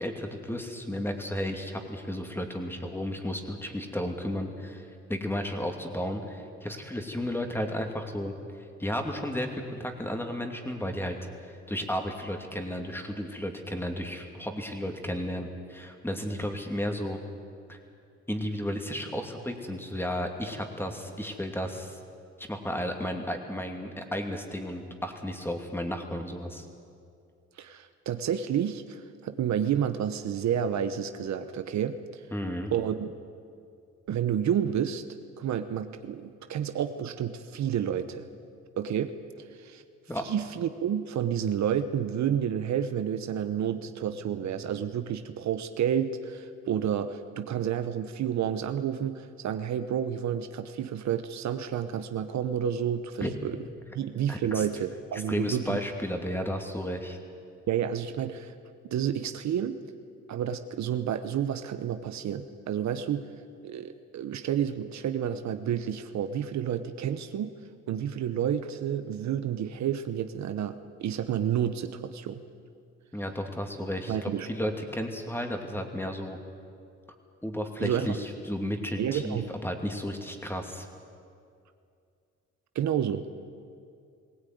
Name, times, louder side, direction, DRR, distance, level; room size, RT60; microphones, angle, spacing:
voice 1, 0.0-8.3 8.8-17.2 17.7-17.8 18.3-22.0 22.4-26.7 32.3-32.7 40.1-40.2 53.2-53.3 54.3-54.7 55.1-57.2 73.1-76.4 77.4-80.9, equal, 5° left, 4 dB, 2.6 m, -33 dB
voice 2, 27.6-32.2 32.7-33.1 34.1-35.0 35.4-38.3 38.8-39.1 39.5-39.8 40.2-53.6 53.9-55.8 57.7-58.5 58.9-59.8 60.3-63.3 63.6-67.5 67.9-72.4 74.1-74.5 77.8-78.2 79.0-79.5 82.7-83.3, right 9 dB, 65° right, 9 dB, 1.0 m, -30 dB
20.0 x 17.0 x 9.4 m, 2.4 s
cardioid pair, 90°, 30 cm